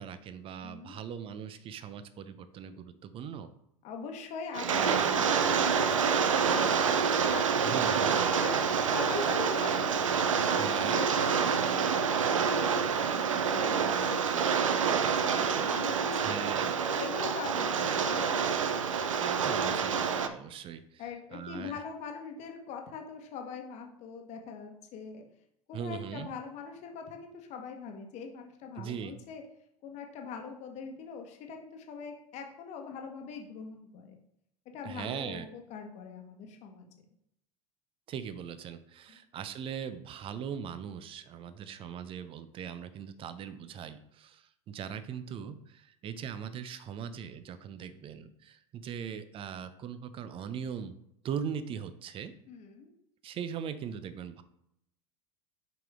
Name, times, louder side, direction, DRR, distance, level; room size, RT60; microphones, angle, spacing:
voice 1, 0.0-3.5 7.6-8.2 10.5-11.0 16.2-16.7 19.2-21.0 21.3-21.7 25.7-26.3 28.8-29.1 34.8-35.5 38.1-51.0 51.2-52.3 53.2-54.4, right 8 dB, 35° right, 12 dB, 0.6 m, -40 dB
voice 2, 0.6-1.0 3.8-7.8 8.3-10.1 10.5-16.4 16.9-18.4 21.0-25.2 25.7-29.4 29.8-34.2 34.7-36.9 39.1-39.2 52.5-52.9, left 6 dB, 45° left, 3 dB, 1.2 m, -42 dB
Rain, 4.5-20.3, right 6 dB, 75° right, 0.5 m, -27 dB
6.0 x 5.0 x 3.6 m, 0.77 s
figure-of-eight pair, 80°, 17 cm